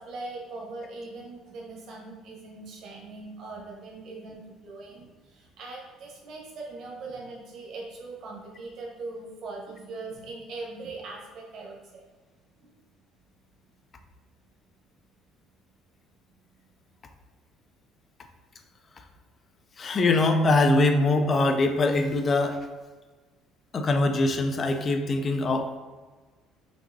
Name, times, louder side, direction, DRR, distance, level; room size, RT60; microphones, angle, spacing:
voice 1, 0.0-12.0 12.6-12.7, right 3 dB, 45° right, -2 dB, 1.0 m, -41 dB
voice 2, 19.8-22.6 23.7-25.8, left 2 dB, 25° left, 6 dB, 0.3 m, -23 dB
5.8 x 2.7 x 2.6 m, 1.4 s
cardioid pair, 170°, 0 cm